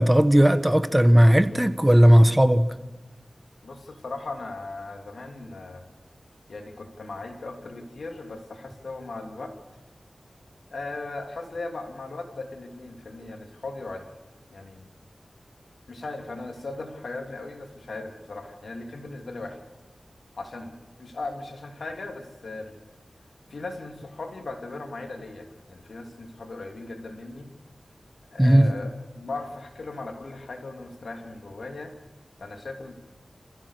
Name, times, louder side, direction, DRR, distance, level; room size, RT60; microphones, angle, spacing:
voice 1, 0.0-2.7 28.4-28.7, equal, 15° right, 1.4 m, -16 dB
voice 2, 3.6-5.9 6.5-9.6 10.7-14.1 14.5-14.9 15.9-19.6 20.4-22.7 23.5-27.5 28.3-32.0 32.4-32.9, left 3 dB, 85° left, 3.2 m, -38 dB
28.0 x 16.0 x 6.9 m
cardioid pair, 50°, 0 cm